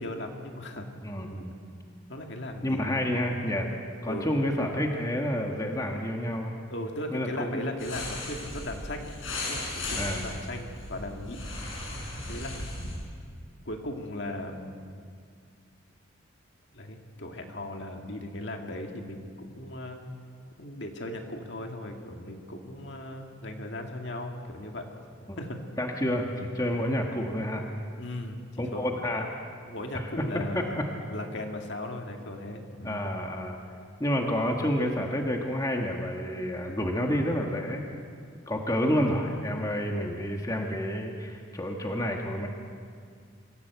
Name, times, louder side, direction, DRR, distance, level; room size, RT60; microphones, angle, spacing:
voice 1, 0.0-0.9 2.1-3.0 4.1-4.3 6.7-9.1 9.5-11.4 12.3-12.5 13.7-14.7 16.7-20.0 20.6-24.9 25.4-25.6 28.0-29.0 29.7-30.7 31.0-33.0, left 1 dB, 60° left, 3 dB, 2.1 m, -37 dB
voice 2, 1.0-1.6 2.6-3.7 4.0-6.5 7.1-7.6 10.0-10.2 25.3-25.5 25.8-27.7 28.6-29.3 29.9-30.9 32.8-33.6 34.0-37.9 38.5-42.5, equal, 15° left, 1 dB, 1.5 m, -29 dB
sound 1, 7.8-12.9, left 2 dB, 80° left, 7.5 m, -36 dB
25.0 x 15.5 x 8.1 m, 2.2 s
head